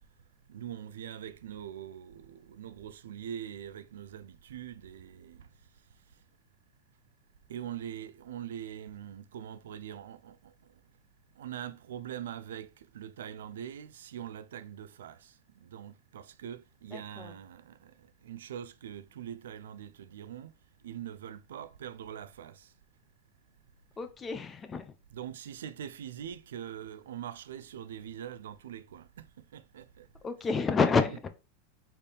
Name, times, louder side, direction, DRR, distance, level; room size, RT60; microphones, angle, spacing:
voice 1, 0.5-5.5 7.5-10.7 11.4-20.5 20.8-22.7 25.1-30.1, right 10 dB, 85° right, 0.4 m, -43 dB
voice 2, 16.9-17.3 24.0-24.9 30.2-31.3, left 4 dB, 20° left, 0.7 m, -29 dB
4.4 x 3.5 x 3.3 m
hypercardioid pair, 115°, 0 cm